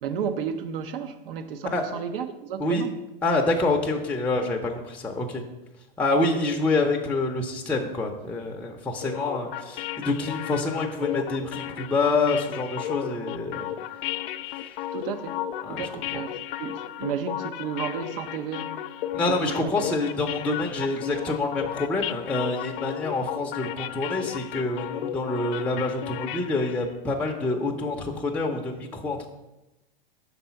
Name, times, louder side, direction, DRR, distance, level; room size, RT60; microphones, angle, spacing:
voice 1, 0.0-2.9 14.9-15.4 15.7-18.7 19.3-19.7, right 7 dB, 65° right, 0.7 m, -32 dB
voice 2, 1.6-2.0 2.6-2.9 3.2-5.4 6.0-13.7 15.6-16.2 19.1-29.3, left 2 dB, 5° left, 0.5 m, -27 dB
sound 1, 9.0-26.9, left 12 dB, 60° left, 0.5 m, -34 dB
5.4 x 4.1 x 5.6 m
hypercardioid pair, 115°, 30 cm